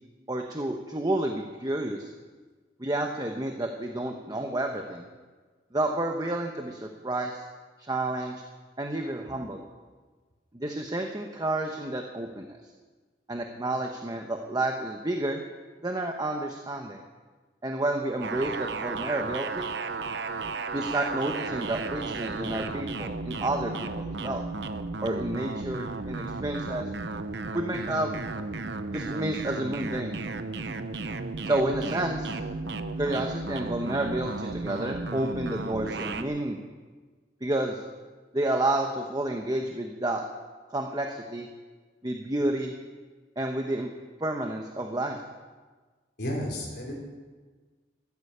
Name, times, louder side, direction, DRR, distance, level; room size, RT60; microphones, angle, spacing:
voice 1, 0.3-2.1 2.8-5.0 5.7-7.4 7.9-8.3 8.8-9.6 10.5-12.4 13.3-15.4 15.8-17.0 17.6-19.7 20.7-24.4 25.0-26.8 27.5-28.1 28.9-30.2 31.4-32.3 33.0-36.6 37.4-37.8 38.3-40.2 40.7-41.5 42.0-42.7 43.4-43.9 44.2-45.2, right 1 dB, 20° right, 3 dB, 1.1 m, -30 dB
sound 1, 18.2-36.2, right 3 dB, 70° right, 0.9 m, -34 dB
voice 2, 46.2-47.0, left 1 dB, 60° left, 0 dB, 4.0 m, -33 dB
15.0 x 13.0 x 6.8 m, 1.4 s
head